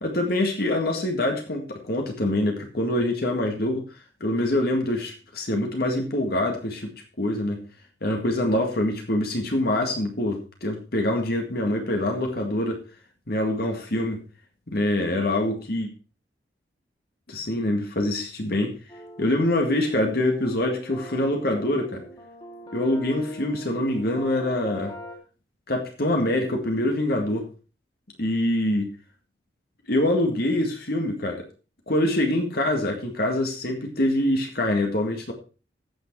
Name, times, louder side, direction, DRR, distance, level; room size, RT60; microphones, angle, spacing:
voice 1, 0.0-3.9 4.2-7.6 8.0-12.8 13.3-14.2 14.7-15.9 17.3-18.7 19.2-22.0 22.7-24.9 25.7-27.5 28.2-28.9 29.9-31.4 31.9-35.3, left 1 dB, 55° left, 3 dB, 2.0 m, -25 dB
sound 1, 18.9-25.2, equal, 25° left, 2.7 m, -42 dB
15.5 x 6.3 x 4.7 m, 0.35 s
head